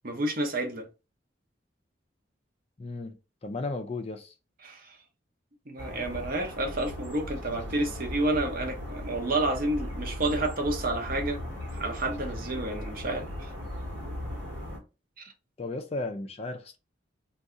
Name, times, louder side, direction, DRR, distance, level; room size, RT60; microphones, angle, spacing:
voice 1, 0.0-0.9 4.6-5.0 5.7-11.4 11.7-13.5 15.2-15.3, right 2 dB, 45° right, 0.7 m, -30 dB
voice 2, 2.8-3.2 3.4-4.3 15.6-16.8, left 2 dB, 30° left, 0.4 m, -34 dB
sound 1, 5.8-14.8, left 1 dB, 70° right, 1.2 m, -38 dB
2.6 x 2.3 x 3.5 m
head